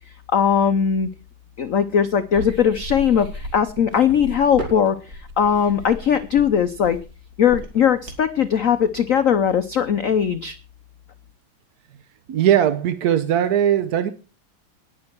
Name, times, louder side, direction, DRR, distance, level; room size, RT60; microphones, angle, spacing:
voice 1, 0.3-1.1 1.6-7.0 7.4-10.6, left 8 dB, 80° left, 11 dB, 0.7 m, -19 dB
sound 1, 2.3-8.4, equal, 40° right, 3.3 m, -34 dB
voice 2, 12.3-14.1, right 10 dB, 60° right, 13 dB, 1.0 m, -19 dB
19.0 x 7.5 x 4.5 m, 0.34 s
omnidirectional pair, 2.4 m